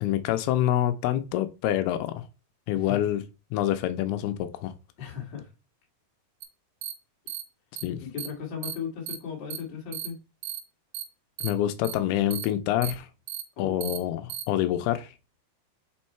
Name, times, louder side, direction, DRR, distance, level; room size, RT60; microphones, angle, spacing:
voice 1, 0.0-2.3 2.7-3.2 3.5-4.7 7.8-8.0 11.4-13.1 13.6-15.1, left 12 dB, 85° left, 2.5 m, -26 dB
voice 2, 2.7-3.1 5.0-5.5 8.0-10.2 13.6-13.9, left 7 dB, 40° left, 1.8 m, -36 dB
sound 1, 6.4-6.5 6.8-6.9 7.3-7.4 7.8-7.9 8.2-8.3 8.6-8.7 9.1-9.2 9.5-9.6 9.9-10.1 10.4-10.6 10.9-11.0 11.4-11.5 11.8-11.9 12.3-12.4 12.8-12.9 13.3-13.4 13.8-14.0 14.3-14.4, right 11 dB, 85° right, 2.8 m, -34 dB
5.4 x 4.5 x 4.3 m
omnidirectional pair, 4.6 m